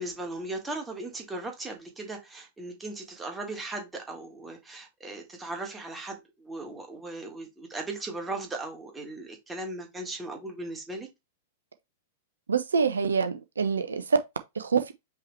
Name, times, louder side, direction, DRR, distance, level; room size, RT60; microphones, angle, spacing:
voice 1, 0.0-11.1, right 2 dB, 10° right, 1.5 m, -37 dB
voice 2, 12.5-14.2 14.5-14.9, right 5 dB, 75° right, 0.5 m, -25 dB
5.4 x 3.0 x 3.3 m
figure-of-eight pair, 100°, 0 cm